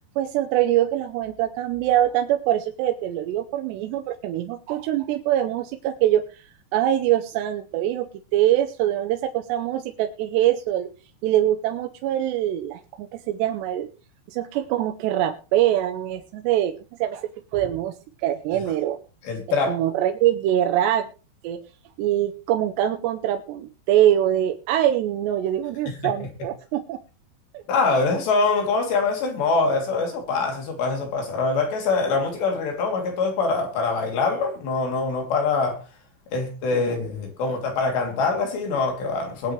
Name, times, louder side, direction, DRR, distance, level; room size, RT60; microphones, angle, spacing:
voice 1, 0.2-6.2 6.7-10.9 11.2-13.9 14.3-16.7 17.0-17.9 18.2-19.0 19.7-21.1 21.4-21.6 22.0-27.0 27.5-27.6 36.7-36.9, right 12 dB, 80° right, 3.0 m, -23 dB
voice 2, 19.2-19.7 25.9-26.1 27.7-35.8 36.3-39.5, left 4 dB, 75° left, 5.3 m, -24 dB
21.0 x 9.1 x 3.3 m
omnidirectional pair, 4.9 m